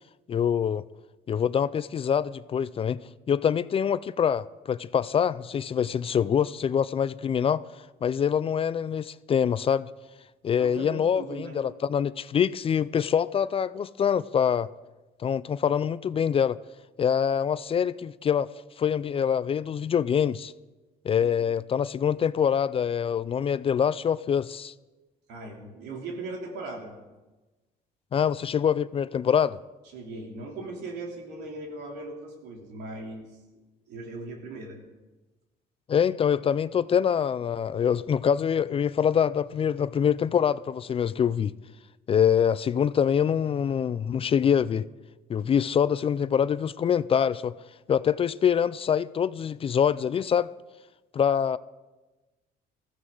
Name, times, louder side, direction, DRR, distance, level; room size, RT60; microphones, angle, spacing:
voice 1, 0.3-0.8 1.3-3.0 3.3-7.6 8.0-9.9 10.4-14.7 15.2-16.6 17.0-18.5 18.8-20.5 21.0-24.7 28.1-29.6 35.9-41.5 42.1-44.8 45.3-47.5 47.9-50.5 51.1-51.6, left 8 dB, 35° left, 0.4 m, -25 dB
voice 2, 10.6-11.6 21.2-21.4 25.3-26.9 29.9-33.2 33.9-34.8, right 2 dB, 85° right, 3.3 m, -38 dB
20.0 x 15.0 x 3.9 m
cardioid pair, 110°, 17 cm